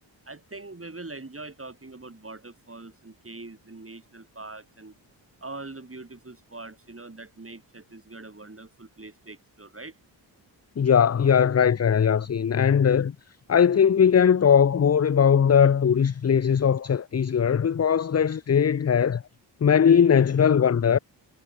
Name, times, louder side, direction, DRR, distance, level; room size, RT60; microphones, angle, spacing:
voice 1, 0.3-4.9 5.4-9.9, right 3 dB, 30° right, 6.2 m, -42 dB
voice 2, 10.8-13.1 13.5-19.2 19.6-21.0, left 7 dB, 35° left, 0.7 m, -20 dB
cardioid pair, 55°, 46 cm